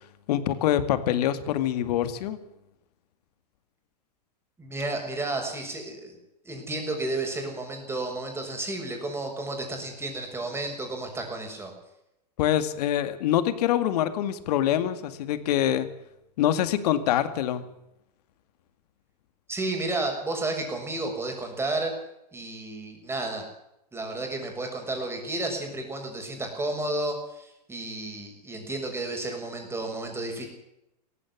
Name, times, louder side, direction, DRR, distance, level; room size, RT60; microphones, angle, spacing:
voice 1, 0.3-2.4 12.4-15.9 16.4-17.7, left 11 dB, 65° left, 12 dB, 2.2 m, -25 dB
voice 2, 4.6-6.2 6.4-11.7 19.5-21.9 22.3-23.5 23.9-30.5, right 2 dB, 10° right, 3 dB, 6.7 m, -32 dB
17.5 x 15.5 x 9.7 m, 0.85 s
hypercardioid pair, 125°, 21 cm